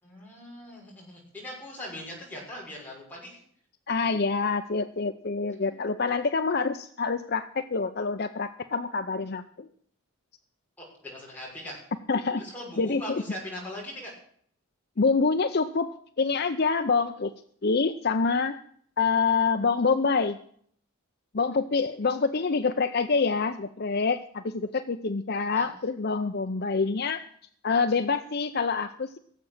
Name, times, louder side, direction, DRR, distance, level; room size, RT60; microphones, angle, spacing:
voice 1, 0.0-3.4 10.8-11.8 12.4-14.1 25.5-25.7, left 1 dB, 10° left, -4 dB, 6.3 m, -40 dB
voice 2, 3.9-9.7 12.1-12.4 12.8-13.2 15.0-15.9 16.2-17.3 17.6-18.6 19.0-20.4 21.3-27.2 27.6-29.2, left 4 dB, 50° left, 9 dB, 0.6 m, -26 dB
17.5 x 7.6 x 8.7 m, 0.62 s
head